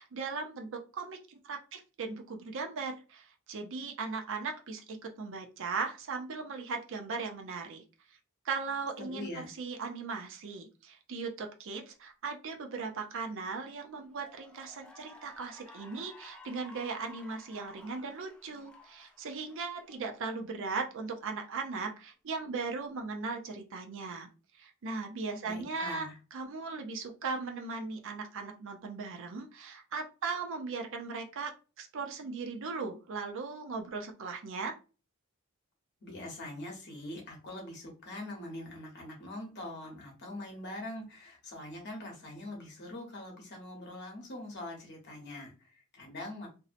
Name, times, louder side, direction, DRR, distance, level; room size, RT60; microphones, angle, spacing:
voice 1, 0.0-7.8 8.4-24.3 24.6-31.5 31.8-34.8, right 4 dB, 60° right, 4 dB, 0.5 m, -38 dB
voice 2, 9.1-9.5 25.4-26.2 36.0-46.5, left 1 dB, 50° left, 0 dB, 0.9 m, -43 dB
Cheering / Applause, 13.4-13.6 14.1-20.6, left 1 dB, 5° left, 0.3 m, -54 dB
2.6 x 2.0 x 2.5 m, 0.33 s
head